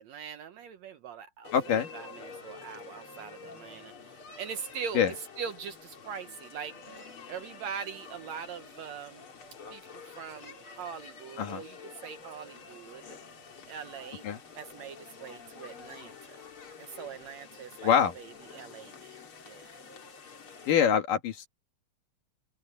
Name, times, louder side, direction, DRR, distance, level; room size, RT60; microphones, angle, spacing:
voice 1, 0.0-7.0 7.3-9.3 9.7-13.2 13.7-14.2 14.6-16.4 16.8-19.8, right 7 dB, 65° right, 1.9 m, -42 dB
sound 1, 1.4-20.7, left 5 dB, 40° left, 3.1 m, -48 dB
voice 2, 1.5-1.9 4.9-5.1 11.4-11.6 14.2-14.4 17.8-18.1 20.7-21.5, left 8 dB, 70° left, 3.5 m, -24 dB
open air
omnidirectional pair, 3.9 m